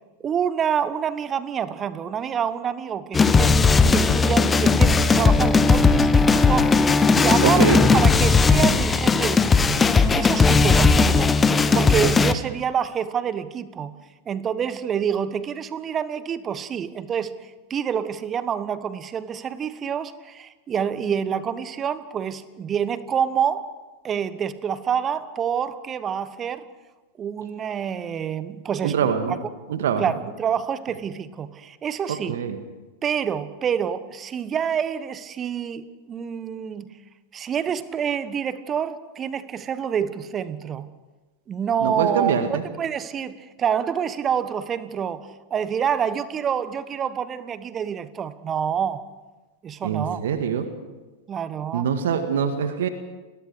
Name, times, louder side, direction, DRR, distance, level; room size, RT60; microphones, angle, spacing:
voice 1, 0.2-3.6 3.9-13.9 14.3-23.7 24.0-26.6 27.2-29.4 30.0-32.4 33.0-36.9 37.3-40.9 41.5-49.0 49.6-50.2 51.3-51.9, right 8 dB, 25° right, 14 dB, 1.3 m, -27 dB
sound 1, 3.1-12.3, left 4 dB, 15° left, 1.2 m, -17 dB
voice 2, 7.4-7.8 28.8-29.3 29.7-30.0 32.1-32.6 41.8-42.6 49.8-50.7 51.7-52.9, right 7 dB, 60° right, 8 dB, 1.9 m, -24 dB
29.5 x 21.5 x 4.9 m, 1.2 s
figure-of-eight pair, 90°, 0 cm